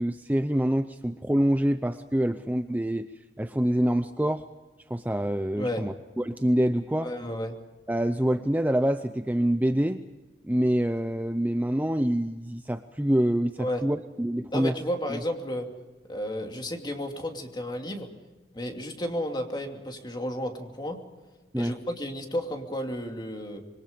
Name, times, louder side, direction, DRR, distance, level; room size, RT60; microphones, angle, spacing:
voice 1, 0.0-3.1 3.4-4.4 4.9-7.1 7.9-10.0 10.4-14.7 15.1-15.2 21.5-21.7, right 1 dB, 10° right, 9 dB, 0.6 m, -26 dB
voice 2, 7.0-7.6 13.6-13.8 14.5-15.7 16.1-18.1 18.5-21.0 21.6-23.6, equal, 25° left, 3 dB, 2.7 m, -32 dB
26.0 x 23.5 x 5.3 m, 1.2 s
head